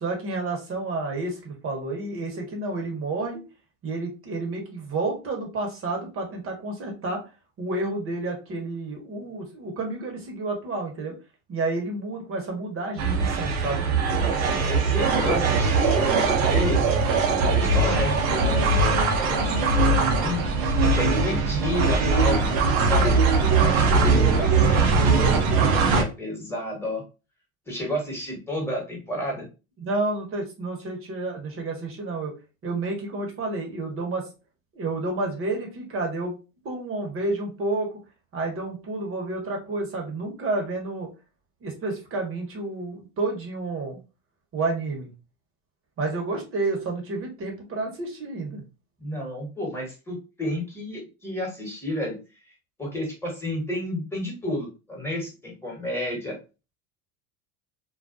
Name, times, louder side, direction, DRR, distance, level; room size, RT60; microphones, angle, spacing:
voice 1, 0.0-3.4 3.8-7.2 7.6-11.1 11.5-13.8 18.0-18.3 21.3-21.6 29.8-32.3 32.6-34.3 34.7-36.3 36.6-38.0 38.3-41.1 41.6-44.0 44.5-45.1 46.0-48.6, right 2 dB, 35° right, 2 dB, 1.0 m, -30 dB
sound 1, 13.0-26.0, right 4 dB, 55° right, 0.7 m, -21 dB
voice 2, 14.7-16.8 17.5-20.5 20.9-23.1 23.5-27.0 27.7-29.5 49.0-52.2 52.4-52.5 52.8-56.4, left 1 dB, 5° left, -2 dB, 1.2 m, -31 dB
2.3 x 2.1 x 2.5 m, 0.30 s
hypercardioid pair, 90°, 41 cm